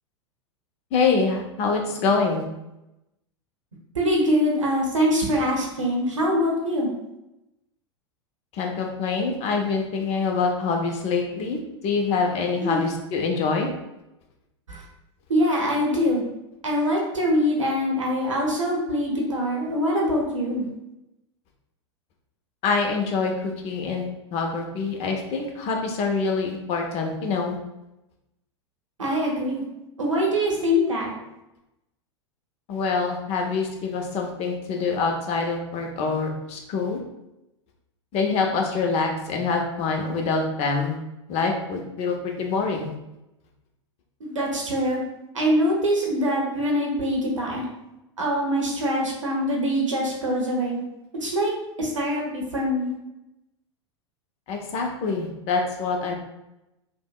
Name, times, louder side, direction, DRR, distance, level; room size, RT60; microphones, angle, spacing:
voice 1, 0.9-2.4 8.5-11.6 11.8-13.7 22.6-24.0 24.3-27.6 32.7-37.0 38.1-40.9 41.3-42.9 54.5-56.1, left 4 dB, 40° left, 2 dB, 0.6 m, -25 dB
voice 2, 3.9-6.9 12.6-12.8 14.7-14.8 15.3-16.2 16.6-20.7 29.0-29.6 30.0-31.1 44.2-45.0 45.3-47.6 48.2-50.8 51.2-51.5 51.8-52.9, equal, 90° right, -1 dB, 0.8 m, -23 dB
3.4 x 2.2 x 2.3 m, 0.92 s
hypercardioid pair, 95°, 16 cm